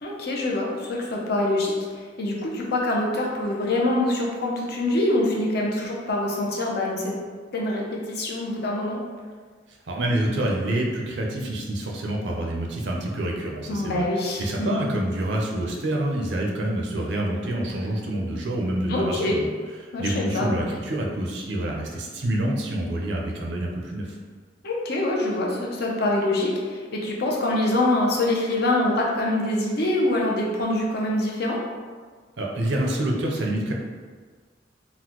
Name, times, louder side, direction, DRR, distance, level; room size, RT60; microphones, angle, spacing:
voice 1, 0.0-1.7 2.2-7.1 7.5-9.0 13.7-14.8 18.9-19.4 19.9-20.5 24.6-31.6, left 1 dB, 60° left, -2 dB, 0.6 m, -25 dB
voice 2, 9.9-14.1 14.4-19.5 19.8-24.2 32.4-33.7, right 1 dB, 70° right, -1 dB, 0.5 m, -27 dB
3.8 x 2.1 x 2.9 m, 1.5 s
head